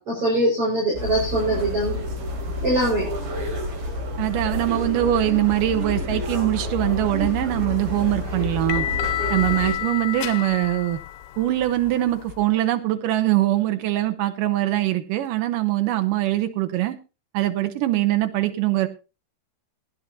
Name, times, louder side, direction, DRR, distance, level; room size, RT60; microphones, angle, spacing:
voice 1, 0.0-2.0 2.6-3.1, right 1 dB, 30° right, -4 dB, 6.0 m, -22 dB
sound 1, 0.9-9.7, left 1 dB, 55° right, 4.8 m, -29 dB
voice 2, 4.2-8.9 9.3-11.0 11.4-17.0 17.3-18.9, right 14 dB, 80° right, 7 dB, 1.9 m, -22 dB
sound 2, 7.6-12.4, left 13 dB, 90° left, 3.4 m, -30 dB
19.0 x 10.5 x 2.8 m, 0.29 s
omnidirectional pair, 5.4 m